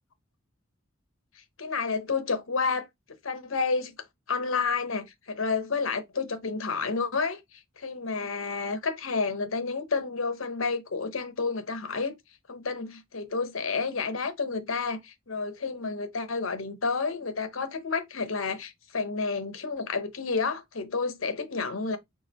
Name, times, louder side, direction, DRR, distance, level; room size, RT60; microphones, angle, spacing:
voice 1, 1.3-2.9 3.2-3.9 4.3-12.1 12.5-22.0, left 4 dB, 85° left, 1.0 m, -30 dB
4.8 x 2.5 x 4.2 m
head